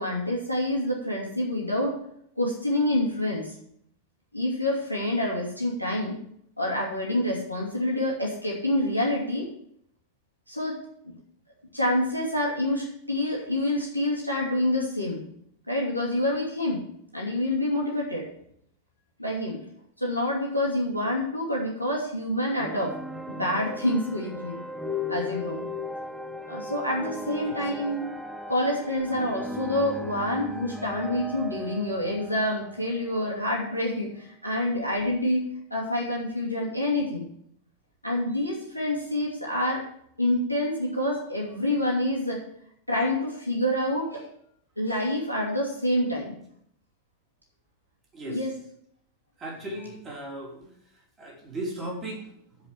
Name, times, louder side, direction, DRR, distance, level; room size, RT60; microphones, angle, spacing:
voice 1, 0.0-2.0 2.4-3.6 4.3-6.2 6.6-9.5 10.5-10.8 11.0-11.2 11.7-15.2 15.7-16.8 17.1-18.2 19.2-19.6 20.0-22.9 23.3-24.6 25.1-25.6 26.5-28.0 28.5-37.2 38.0-39.9 40.2-42.4 42.9-44.2 44.8-46.4 48.3-48.6, left 1 dB, 90° right, -3 dB, 2.9 m, -27 dB
sound 1, 22.5-33.8, left 2 dB, 5° right, 1.0 m, -37 dB
voice 2, 49.4-50.6 51.2-52.3, right 1 dB, 25° right, -2 dB, 3.5 m, -36 dB
9.6 x 5.3 x 8.0 m, 0.70 s
figure-of-eight pair, 90°, 0 cm